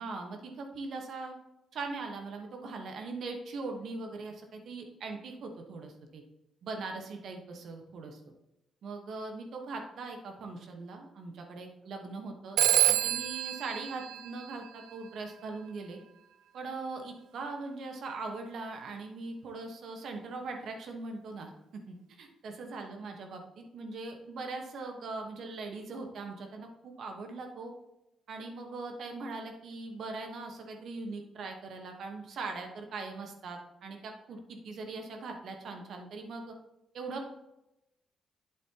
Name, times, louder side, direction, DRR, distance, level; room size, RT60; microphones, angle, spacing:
voice 1, 0.0-1.4 1.7-6.2 6.6-8.2 8.8-16.0 16.5-21.5 21.9-27.7 28.3-36.5 36.9-37.3, right 3 dB, 70° right, 3 dB, 1.3 m, -41 dB
Telephone, 12.6-15.1, right 13 dB, 85° right, 0.3 m, -28 dB
8.7 x 7.3 x 3.0 m, 0.91 s
cardioid pair, 85°, 0 cm